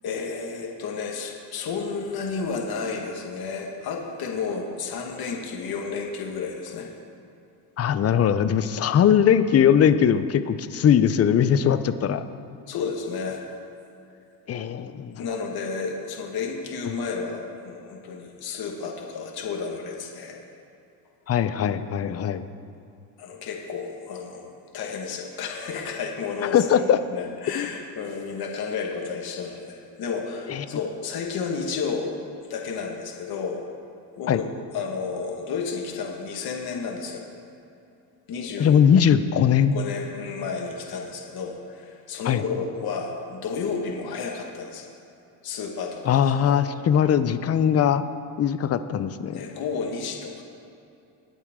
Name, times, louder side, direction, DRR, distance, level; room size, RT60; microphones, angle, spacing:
voice 1, 0.0-6.9 8.8-9.1 12.7-13.4 15.2-20.4 23.2-24.5 24.7-32.1 32.5-33.6 34.2-34.4 34.7-37.3 38.3-38.8 39.7-44.9 45.4-46.6 49.3-50.4, left 5 dB, 55° left, 1 dB, 1.7 m, -32 dB
voice 2, 7.8-12.2 14.5-15.3 21.3-22.4 26.5-27.0 27.5-27.7 30.5-30.6 34.3-34.4 38.6-39.7 42.2-42.4 46.1-48.0 48.4-49.4, left 8 dB, 35° left, 12 dB, 0.6 m, -20 dB
20.5 x 8.1 x 3.7 m, 2.7 s
cardioid pair, 110°, 44 cm